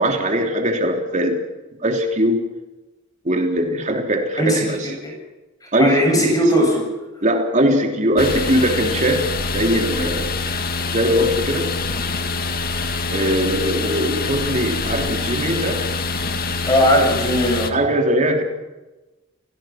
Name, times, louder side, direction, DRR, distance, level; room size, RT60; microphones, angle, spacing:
voice 1, 0.0-1.4 1.8-2.5 3.2-4.9 5.7-6.4 7.2-10.3 10.9-11.8 13.1-15.8 17.7-18.4, equal, 35° right, 3 dB, 3.3 m, -20 dB
voice 2, 5.6-6.9 16.7-17.8, equal, 20° left, 1 dB, 7.6 m, -18 dB
sound 1, 8.2-17.7, left 3 dB, 45° left, 2.0 m, -25 dB
29.5 x 18.0 x 6.1 m, 1.1 s
head